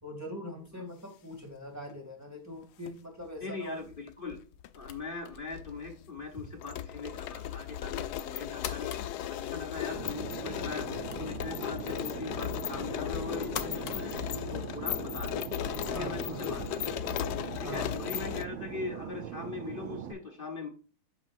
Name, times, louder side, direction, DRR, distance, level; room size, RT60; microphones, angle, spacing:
voice 1, 0.0-3.8 15.9-16.5 17.6-17.9, equal, 5° right, 1 dB, 2.4 m, -42 dB
sound 1, 2.6-2.9 3.9-4.7 5.0-5.1 5.5-18.4, left 11 dB, 85° left, 0.9 m, -36 dB
voice 2, 3.4-4.4 4.7-15.4 15.8-17.2 17.6-20.7, left 3 dB, 40° left, 2 dB, 0.8 m, -41 dB
sound 2, 3.6-17.2, left 9 dB, 65° left, 1.3 m, -49 dB
Fixed-wing aircraft airplane, 9.9-20.1, right 10 dB, 75° right, 1.3 m, -41 dB
8.6 x 6.2 x 2.6 m, 0.38 s
omnidirectional pair, 2.3 m